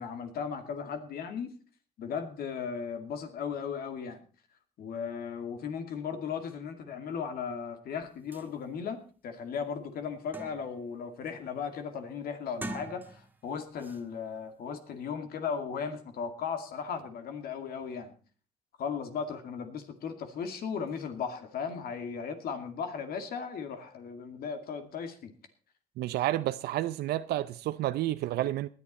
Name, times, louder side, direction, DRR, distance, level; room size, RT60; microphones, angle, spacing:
voice 1, 0.0-1.5 2.0-4.2 4.8-9.0 9.2-18.1 18.8-25.3, left 6 dB, 70° left, 2.3 m, -36 dB
sound 1, 8.0-8.1 8.3-8.5 9.0-9.1 9.5-10.9 11.3-11.6 12.4-13.4 13.8-14.0, right 2 dB, 10° right, 1.4 m, -44 dB
voice 2, 26.0-28.7, right 14 dB, 85° right, 0.6 m, -30 dB
18.5 x 11.0 x 4.2 m
cardioid pair, 125°, 16 cm